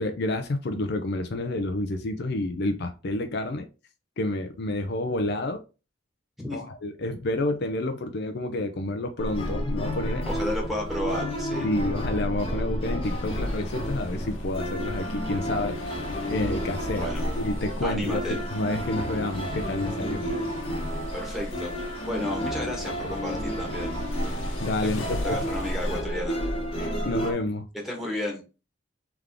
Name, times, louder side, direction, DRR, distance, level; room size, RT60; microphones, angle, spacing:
voice 1, 0.0-3.7 4.2-5.6 6.5-10.3 11.6-15.8 16.3-20.2 24.6-25.5 26.8-27.7, left 2 dB, 60° left, 0.5 m, -29 dB
sound 1, 9.2-27.3, equal, 30° left, 1.0 m, -31 dB
voice 2, 10.3-11.7 17.0-17.3 17.8-18.4 21.1-21.7 22.0-24.0 24.8-26.4 27.8-28.4, left 1 dB, ahead, 1.4 m, -32 dB
sound 2, 13.0-26.0, left 2 dB, 85° left, 1.0 m, -41 dB
3.5 x 3.5 x 3.6 m
head